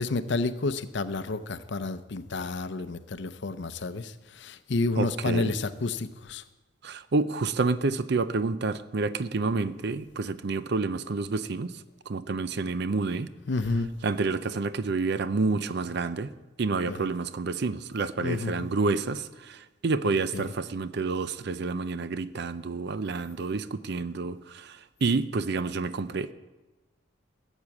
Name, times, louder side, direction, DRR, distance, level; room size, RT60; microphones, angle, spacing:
voice 1, 0.0-6.4 13.5-13.9 16.9-17.1 18.2-18.7 20.3-20.5, left 3 dB, 60° left, 13 dB, 0.6 m, -30 dB
voice 2, 5.0-5.5 6.8-11.7 12.1-13.3 14.0-16.3 16.6-26.3, right 3 dB, 55° right, 14 dB, 0.5 m, -29 dB
13.5 x 8.2 x 7.2 m, 1.1 s
head